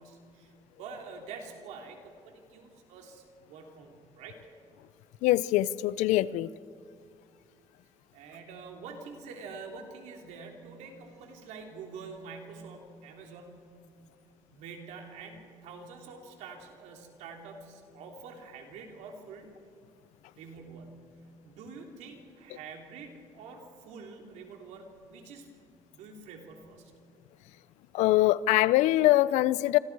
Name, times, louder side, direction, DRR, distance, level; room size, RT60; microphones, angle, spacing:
voice 1, 0.0-4.4 8.1-14.1 14.5-19.5 20.4-21.0 21.4-25.5 25.9-26.9, right 4 dB, 85° right, 2 dB, 3.1 m, -46 dB
voice 2, 5.2-6.5 27.9-29.8, left 16 dB, 90° left, 19 dB, 0.5 m, -23 dB
26.5 x 26.0 x 4.7 m, 2.3 s
cardioid pair, 90°, 12 cm